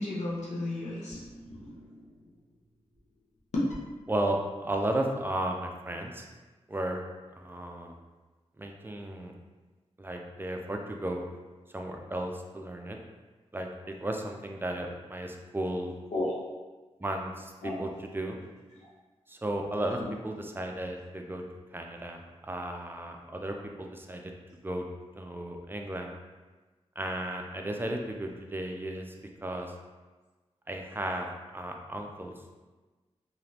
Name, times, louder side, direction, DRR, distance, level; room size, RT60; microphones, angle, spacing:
voice 1, 0.0-2.0 3.5-3.6 16.1-16.4 17.6-17.8 18.2-18.3 20.0-20.1, left 2 dB, 85° left, -6 dB, 0.7 m, -33 dB
voice 2, 4.1-6.3 6.7-7.0 7.4-7.9 8.6-9.3 10.0-11.3 11.7-13.0 13.5-15.9 17.0-18.4 19.3-21.4 21.7-24.3 24.6-24.8 25.2-26.1 27.0-29.0 29.4-29.7 30.7-31.3 31.5-32.3, right 1 dB, 20° right, 2 dB, 0.4 m, -34 dB
3.0 x 2.5 x 2.7 m, 1.3 s
cardioid pair, 60°, 11 cm